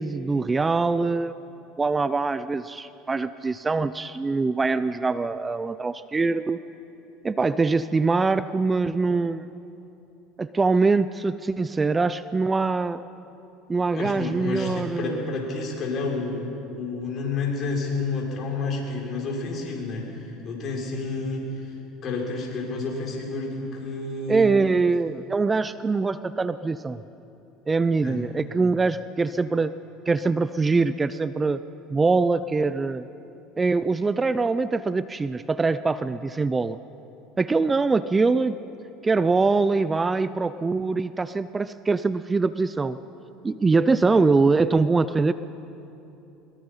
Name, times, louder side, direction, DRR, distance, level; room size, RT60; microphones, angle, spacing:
voice 1, 0.0-1.4 1.8-6.6 7.2-9.5 10.4-13.0 13.7-15.2 24.3-27.0 27.7-29.7 30.1-31.6 31.9-33.1 33.6-36.8 37.4-38.6 39.0-43.0 43.4-45.3, right 4 dB, 20° right, 14 dB, 0.6 m, -23 dB
voice 2, 13.9-21.7 22.0-24.4 28.0-28.3, left 3 dB, 45° left, -1 dB, 6.2 m, -30 dB
23.0 x 21.5 x 5.7 m, 2.9 s
hypercardioid pair, 90°, 0 cm